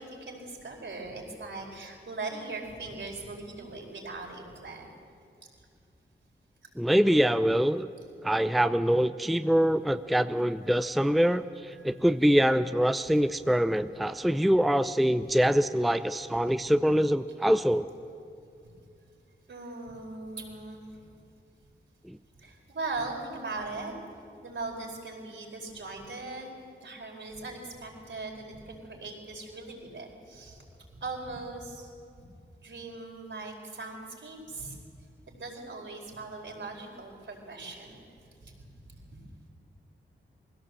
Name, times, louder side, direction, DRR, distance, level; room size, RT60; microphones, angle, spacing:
voice 1, 0.0-4.9 11.8-12.0 19.5-20.8 22.4-23.9 24.4-26.5 26.8-30.6 30.9-31.9 32.6-34.7 35.3-38.1 38.4-39.0, right 3 dB, 65° right, 0 dB, 4.6 m, -40 dB
voice 2, 6.8-7.9 8.2-17.9 22.1-22.2, equal, ahead, 11 dB, 0.6 m, -24 dB
21.0 x 16.5 x 7.8 m, 2.4 s
cardioid pair, 50°, 21 cm